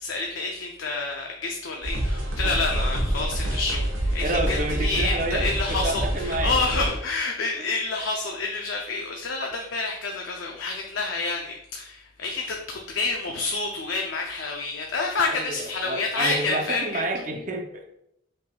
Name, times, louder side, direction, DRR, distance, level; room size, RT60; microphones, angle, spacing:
voice 1, 0.0-17.0, left 3 dB, 75° left, 1 dB, 0.5 m, -28 dB
sound 1, 1.8-6.9, right 1 dB, 85° right, 1.0 m, -27 dB
voice 2, 4.2-6.5 15.3-18.0, right 2 dB, 40° right, 4 dB, 0.5 m, -29 dB
5.6 x 3.3 x 2.2 m, 0.76 s
head